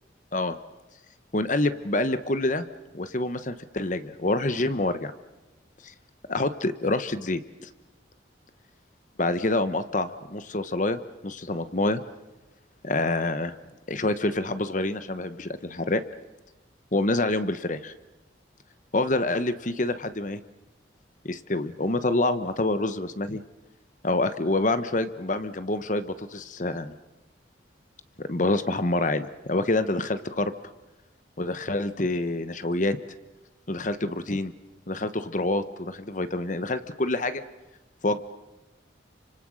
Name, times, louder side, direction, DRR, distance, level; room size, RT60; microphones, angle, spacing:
voice 1, 1.3-2.7 2.9-5.1 5.8-5.9 6.3-7.7 9.2-12.0 12.8-13.5 13.9-16.0 16.9-17.9 18.9-20.4 21.2-23.4 24.0-26.9 28.2-30.5 31.4-33.0 33.7-34.5 34.9-37.4 38.0-38.2, left 2 dB, 40° left, 12 dB, 1.1 m, -27 dB
29.5 x 25.5 x 6.4 m, 1.0 s
head